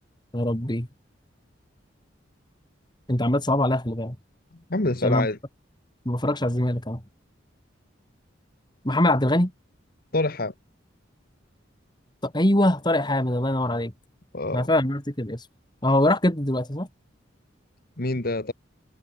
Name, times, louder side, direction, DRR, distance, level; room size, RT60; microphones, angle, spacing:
voice 1, 0.3-0.9 3.1-4.2 5.0-5.3 6.1-7.0 8.8-9.5 12.2-13.9 14.5-15.4 15.8-16.9, left 1 dB, 25° left, 3.6 m, -23 dB
voice 2, 4.7-5.4 10.1-10.5 14.3-14.7 18.0-18.5, left 2 dB, 50° left, 1.7 m, -26 dB
head